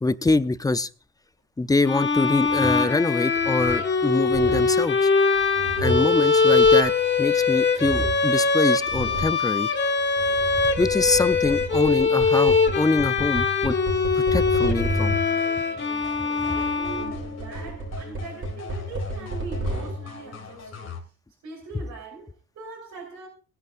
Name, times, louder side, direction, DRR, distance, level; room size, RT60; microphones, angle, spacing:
voice 1, 0.0-0.9 1.6-5.1 5.8-6.9 7.2-9.7 10.8-13.7 14.2-15.2, left 3 dB, 10° left, 0.6 m, -24 dB
sound 1, 1.8-17.5, left 4 dB, 35° left, 1.7 m, -22 dB
sound 2, 2.5-2.9 3.4-3.9 4.3-4.8 5.4-7.4 7.8-8.3 8.8-9.4 10.0-15.5 16.4-20.2, right 1 dB, 40° right, 5.7 m, -32 dB
sound 3, 15.3-21.0, left 4 dB, 55° left, 2.5 m, -41 dB
voice 2, 16.2-21.1 21.4-23.3, right 4 dB, 80° right, 5.1 m, -41 dB
19.0 x 11.0 x 2.6 m
cardioid pair, 90°, 30 cm